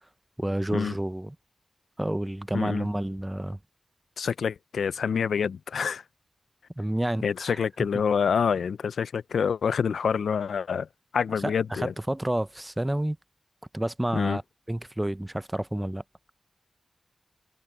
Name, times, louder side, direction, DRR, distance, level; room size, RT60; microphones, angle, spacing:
voice 1, 0.4-1.4 2.0-3.6 6.8-7.6 11.3-13.2 13.7-14.4 14.7-16.0, right 1 dB, 15° right, 0.7 m, -29 dB
voice 2, 2.5-2.9 4.2-6.0 7.2-10.9 11.1-11.9 14.1-14.4, left 6 dB, 90° left, 0.4 m, -27 dB
cardioid pair, 55°, 0 cm